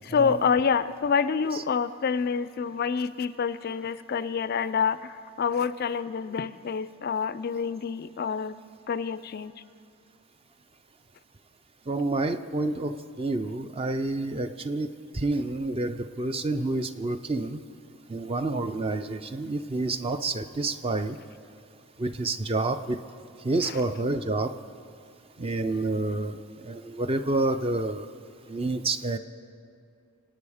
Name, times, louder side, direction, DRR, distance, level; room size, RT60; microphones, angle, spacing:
voice 1, 0.0-8.6 8.9-9.5 23.6-23.8, left 6 dB, 45° left, 15 dB, 0.3 m, -27 dB
voice 2, 11.9-14.9 15.1-17.6 18.1-21.2 22.0-23.0 23.4-24.6 25.4-28.1 28.5-29.2, right 2 dB, 25° right, 10 dB, 0.4 m, -28 dB
25.0 x 9.1 x 4.9 m, 2.4 s
head